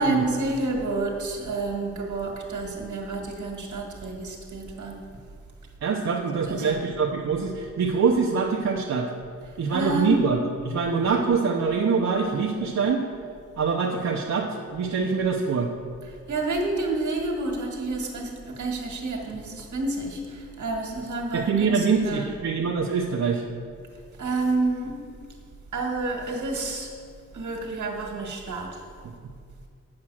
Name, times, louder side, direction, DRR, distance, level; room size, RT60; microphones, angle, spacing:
voice 1, 0.0-5.0 6.3-6.8 9.7-10.2 16.3-22.4 24.2-25.0 25.7-26.9 27.3-28.8, right 2 dB, 80° right, 1 dB, 1.8 m, -29 dB
voice 2, 5.8-9.1 9.6-10.4 10.6-13.0 13.6-15.7 21.3-23.4, right 5 dB, 65° right, -1 dB, 0.8 m, -24 dB
8.7 x 7.4 x 6.3 m, 2.2 s
wide cardioid pair, 110°, 29 cm